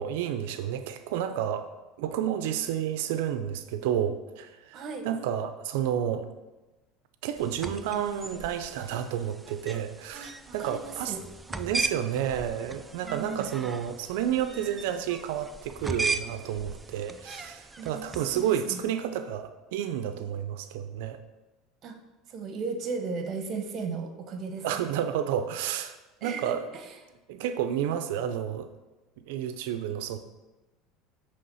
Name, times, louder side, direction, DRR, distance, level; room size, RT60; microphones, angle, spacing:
voice 1, 0.0-1.7 2.0-6.3 7.2-11.1 11.5-21.2 24.6-26.0 26.2-26.6 27.3-28.7 29.3-30.2, right 10 dB, 80° right, 10 dB, 0.5 m, -30 dB
voice 2, 4.7-5.1 10.1-11.2 13.0-13.5 17.8-18.8 21.8-22.0 22.3-24.6 26.2-26.9, right 4 dB, 45° right, 6 dB, 0.9 m, -36 dB
sound 1, 7.4-18.7, right 3 dB, 10° right, 0.4 m, -37 dB
8.5 x 3.4 x 5.5 m, 1.1 s
supercardioid pair, 110°, 0 cm